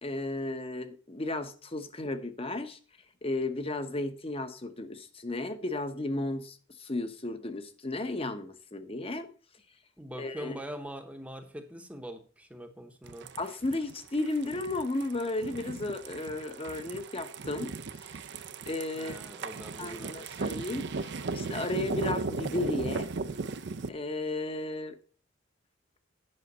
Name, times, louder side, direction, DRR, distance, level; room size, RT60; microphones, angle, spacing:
voice 1, 0.0-2.8 3.2-9.3 10.2-10.6 13.4-18.1 18.7-19.2 19.8-23.1 23.9-25.0, left 2 dB, 30° left, 0.9 m, -34 dB
voice 2, 10.0-13.3 18.9-20.3, equal, 5° right, 0.9 m, -43 dB
sound 1, 13.0-23.9, right 4 dB, 60° right, 0.6 m, -37 dB
9.7 x 5.7 x 5.3 m
head